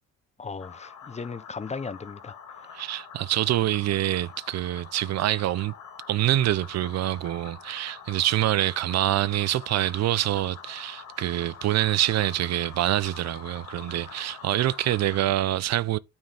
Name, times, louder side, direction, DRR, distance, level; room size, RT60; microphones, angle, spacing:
voice 1, 0.4-2.8, left 4 dB, 25° left, 0.5 m, -37 dB
sound 1, 0.6-15.2, left 7 dB, 70° left, 1.6 m, -45 dB
voice 2, 2.7-5.7 6.1-16.0, right 14 dB, 60° right, 0.4 m, -26 dB
9.3 x 4.5 x 3.2 m
cardioid pair, 90°, 30 cm